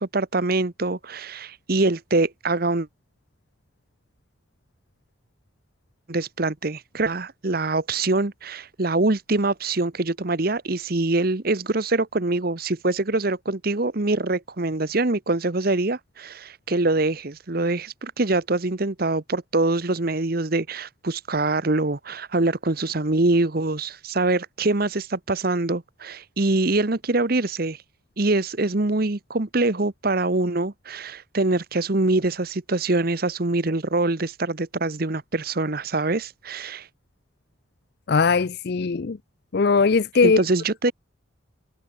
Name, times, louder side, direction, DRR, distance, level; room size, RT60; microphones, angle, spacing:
voice 1, 0.0-2.9 6.1-27.8 28.2-36.9 40.2-40.9, right 2 dB, 45° right, 1.1 m, -24 dB
voice 2, 38.1-39.2 39.5-40.4, left 4 dB, 50° left, 0.5 m, -19 dB
head